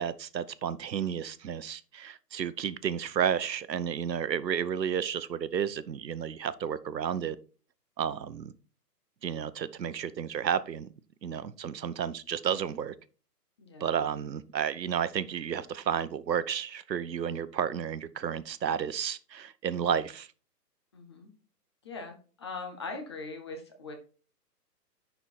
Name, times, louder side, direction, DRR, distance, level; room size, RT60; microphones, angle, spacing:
voice 1, 0.0-7.4 8.0-8.5 9.2-10.9 11.2-12.9 13.8-20.3, right 8 dB, 85° right, 0.9 m, -32 dB
voice 2, 13.6-13.9 20.9-21.3 21.8-23.9, left 3 dB, 15° left, 0.7 m, -41 dB
10.5 x 4.5 x 4.2 m
hypercardioid pair, 160°, 49 cm